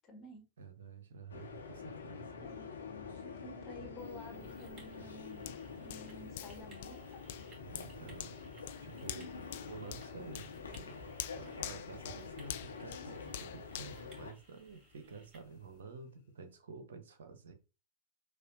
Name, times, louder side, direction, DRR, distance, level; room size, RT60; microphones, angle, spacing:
voice 1, 0.0-0.4 2.4-2.7 3.2-5.5 5.8-7.2, left 1 dB, 25° left, 1.4 m, -52 dB
voice 2, 0.6-2.3 3.1-3.2 7.6-8.4 8.8-9.3 9.7-17.5, right 4 dB, 65° right, 0.7 m, -50 dB
sound 1, 1.3-14.3, left 5 dB, 70° left, 0.9 m, -47 dB
sound 2, 4.0-15.8, right 3 dB, 30° right, 2.0 m, -63 dB
Hands, 5.5-15.0 15.4-15.6, left 11 dB, 55° left, 0.3 m, -47 dB
6.4 x 2.3 x 2.6 m
figure-of-eight pair, 90°, 0 cm